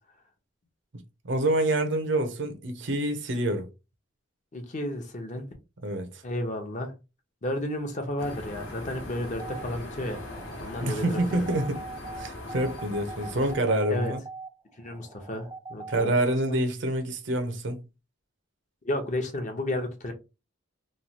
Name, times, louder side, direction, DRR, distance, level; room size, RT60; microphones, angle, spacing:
voice 1, 1.2-3.7 5.8-6.2 10.8-11.8 12.1-14.2 15.9-17.8, right 1 dB, 60° right, 0.6 m, -27 dB
voice 2, 4.5-5.5 6.2-6.9 7.4-10.2 10.6-11.5 13.9-14.1 14.8-16.2 16.5-16.6 18.8-20.1, left 1 dB, 40° left, 0.7 m, -32 dB
sound 1, 8.2-13.5, left 1 dB, 85° left, 1.1 m, -40 dB
sound 2, 9.4-16.0, right 4 dB, 15° right, 0.4 m, -42 dB
3.1 x 2.3 x 2.7 m
head